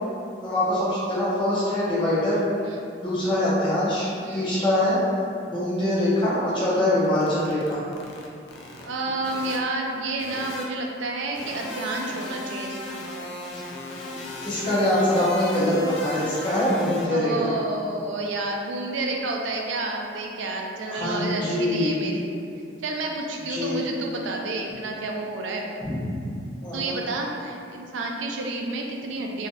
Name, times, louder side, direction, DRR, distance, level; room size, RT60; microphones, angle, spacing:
voice 1, 0.4-2.4 3.0-5.0 5.5-7.8 14.4-17.5 20.9-22.0 23.5-23.8 25.8-26.0 26.6-27.0, left 1 dB, 25° left, -10 dB, 0.9 m, -23 dB
voice 2, 4.2-4.5 8.8-13.3 17.0-22.3 22.8-25.7 26.7-29.5, right 2 dB, 80° right, 0 dB, 0.4 m, -30 dB
sound 1, 7.0-8.8 9.2-9.6 10.2-10.6 11.3-17.1, left 1 dB, 75° left, 0.4 m, -36 dB
3.2 x 2.7 x 2.4 m, 2.5 s
head